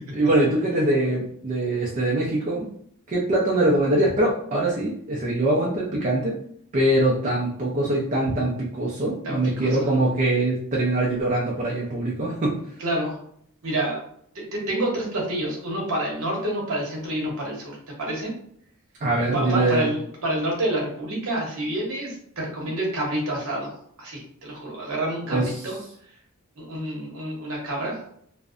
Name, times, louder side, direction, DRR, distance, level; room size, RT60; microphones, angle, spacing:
voice 1, 0.2-2.7 3.1-6.4 6.7-12.6 19.0-19.9 25.3-25.5, right 1 dB, 35° right, -5 dB, 0.4 m, -23 dB
voice 2, 9.2-9.8 12.8-13.2 13.6-14.0 14.3-18.3 19.3-25.8 26.6-28.0, right 1 dB, 65° right, -2 dB, 0.9 m, -28 dB
2.5 x 2.0 x 2.4 m, 0.65 s
head